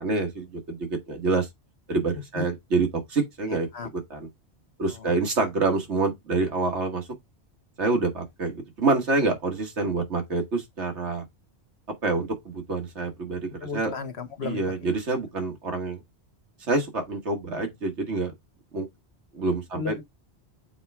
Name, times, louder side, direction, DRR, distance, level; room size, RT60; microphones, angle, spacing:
voice 1, 0.0-1.5 1.9-3.7 4.1-4.3 4.8-7.1 7.8-11.3 12.0-13.9 14.4-16.0 16.7-18.3 18.7-18.9 19.3-19.9, right 3 dB, 85° right, 1.9 m, -27 dB
voice 2, 13.6-14.6 19.7-20.0, left 5 dB, 70° left, 1.3 m, -34 dB
7.0 x 4.4 x 3.5 m
omnidirectional pair, 1.1 m